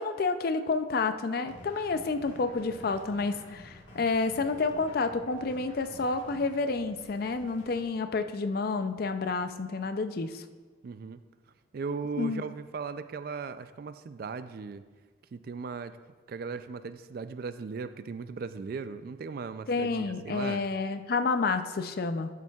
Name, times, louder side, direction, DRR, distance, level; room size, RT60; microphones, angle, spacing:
voice 1, 0.0-10.4 12.2-12.4 19.7-22.3, left 4 dB, 50° left, 9 dB, 0.4 m, -29 dB
sound 1, 1.5-7.9, left 1 dB, 70° left, 1.6 m, -50 dB
voice 2, 10.8-11.2 11.7-14.8 15.3-16.0 16.3-20.7, right 5 dB, 50° right, 12 dB, 0.3 m, -37 dB
12.0 x 7.2 x 2.3 m, 1.3 s
head